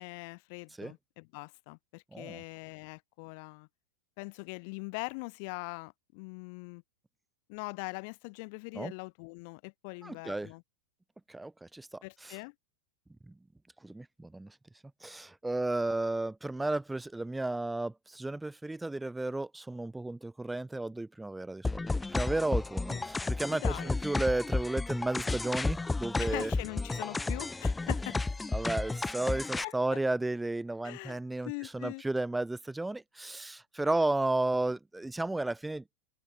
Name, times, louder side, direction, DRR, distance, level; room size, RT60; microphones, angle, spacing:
voice 1, 0.0-3.7 4.2-6.8 7.5-10.6 12.0-12.5 22.9-23.0 23.5-24.0 26.2-28.2 29.6-30.0 30.8-31.2 31.5-32.0 33.9-34.0, left 33 dB, 45° left, 2.1 m, -42 dB
voice 2, 2.1-2.4 8.7-8.9 10.0-10.5 11.3-12.4 13.3-13.4 13.8-14.5 15.0-26.5 28.5-35.8, right 2 dB, 5° right, 2.7 m, -33 dB
sound 1, 21.6-29.6, left 3 dB, 10° left, 0.3 m, -32 dB
open air
figure-of-eight pair, 90°, 0 cm